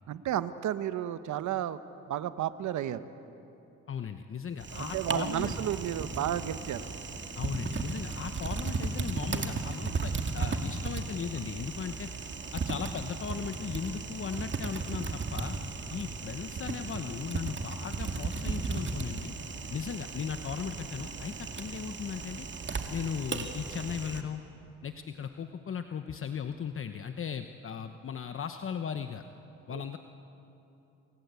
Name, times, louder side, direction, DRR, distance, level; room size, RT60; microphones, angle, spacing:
voice 1, 0.1-1.8 2.1-3.1 4.7-6.8 29.7-29.8, right 11 dB, 75° right, 12 dB, 1.1 m, -32 dB
voice 2, 3.9-5.6 7.4-12.1 12.5-15.6 15.9-19.3 19.7-22.5 22.9-24.4 24.8-29.2 29.7-30.0, left 7 dB, 45° left, 7 dB, 1.1 m, -37 dB
Typing, 4.6-24.2, right 4 dB, 40° right, 2.3 m, -36 dB
27.5 x 24.5 x 8.3 m, 3.0 s
cardioid pair, 90°, 30 cm